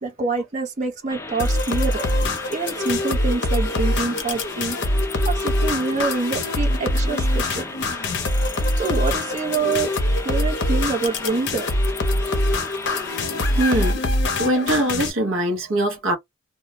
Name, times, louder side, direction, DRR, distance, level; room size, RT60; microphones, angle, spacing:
voice 1, 0.0-2.0 2.5-4.8 5.2-7.6 8.8-9.9 10.2-11.7, right 4 dB, 35° right, 0.9 m, -26 dB
sound 1, 1.1-13.9, left 2 dB, 15° left, 0.4 m, -36 dB
sound 2, 1.4-15.1, left 1 dB, 55° left, 0.6 m, -23 dB
voice 2, 13.5-14.0 14.4-16.2, right 1 dB, 70° right, 0.8 m, -22 dB
2.3 x 2.1 x 2.7 m
head